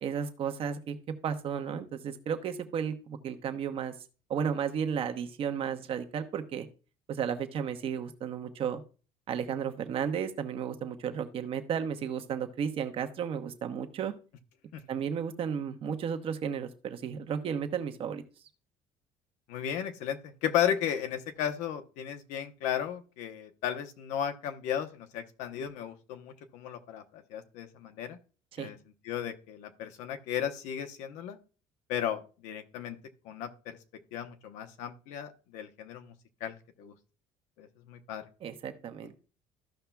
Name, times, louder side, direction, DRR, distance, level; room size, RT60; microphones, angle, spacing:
voice 1, 0.0-3.9 4.3-6.7 7.1-8.8 9.3-14.1 14.9-18.2 28.5-28.7 38.4-39.1, right 7 dB, 50° right, 7 dB, 1.0 m, -33 dB
voice 2, 19.5-28.2 28.6-28.8 29.0-31.4 31.9-33.0 33.2-33.8 34.1-36.1 36.4-36.9 37.6-38.2, left 9 dB, 85° left, 8 dB, 0.9 m, -35 dB
14.5 x 5.7 x 2.3 m, 0.36 s
cardioid pair, 125°, 12 cm